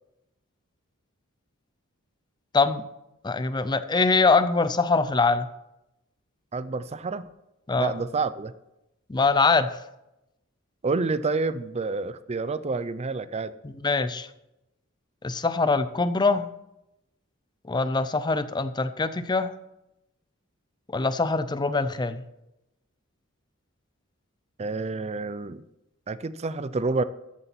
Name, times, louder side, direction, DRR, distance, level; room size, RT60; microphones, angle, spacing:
voice 1, 2.5-2.8 3.2-5.5 7.7-7.9 9.1-9.8 13.6-14.3 15.2-16.5 17.6-19.5 20.9-22.2, left 4 dB, 20° left, 12 dB, 0.5 m, -23 dB
voice 2, 6.5-7.3 7.7-8.5 10.8-13.5 24.6-25.6 26.1-27.0, right 3 dB, 30° right, 14 dB, 0.4 m, -28 dB
13.5 x 8.3 x 5.9 m, 0.90 s
head